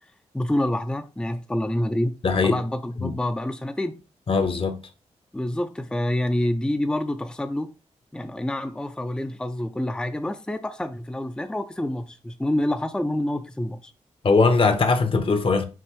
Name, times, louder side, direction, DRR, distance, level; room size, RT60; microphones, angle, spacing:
voice 1, 0.3-2.1 2.4-3.9 5.3-7.7 8.1-13.9, left 1 dB, 5° left, 0.5 m, -27 dB
voice 2, 2.2-2.6 3.0-3.1 4.3-4.8 14.2-15.6, left 4 dB, 45° left, 0.8 m, -20 dB
5.8 x 2.6 x 3.1 m
cardioid pair, 60°, 12 cm